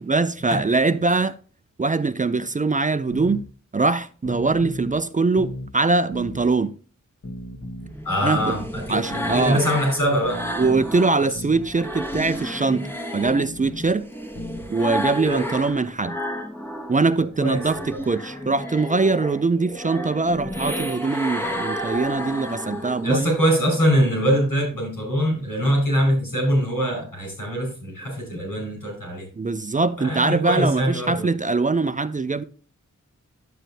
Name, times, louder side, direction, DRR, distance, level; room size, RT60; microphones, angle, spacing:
voice 1, 0.0-1.4 1.8-3.4 3.7-6.7 8.2-8.5 8.9-9.6 10.6-14.1 14.7-16.2 16.9-23.3 29.4-32.4, right 3 dB, 25° right, 0.4 m, -22 dB
sound 1, 3.1-3.4 4.2-5.0 5.4-5.7 6.1-6.5 7.2-8.0 8.4-8.7 9.1-9.5 10.2-10.9 11.4-11.7 12.1-12.4 13.2-13.9 14.4-14.7, left 1 dB, 55° left, 1.2 m, -35 dB
sound 2, 7.8-11.2 11.6-17.0 17.3-23.2, equal, 5° left, 1.1 m, -31 dB
voice 2, 8.0-9.0 9.3-10.4 11.2-11.3 15.2-15.4 17.4-17.6 23.0-29.2 30.0-31.3, equal, 90° left, 5.0 m, -23 dB
10.0 x 7.4 x 2.7 m
cardioid pair, 50°, 32 cm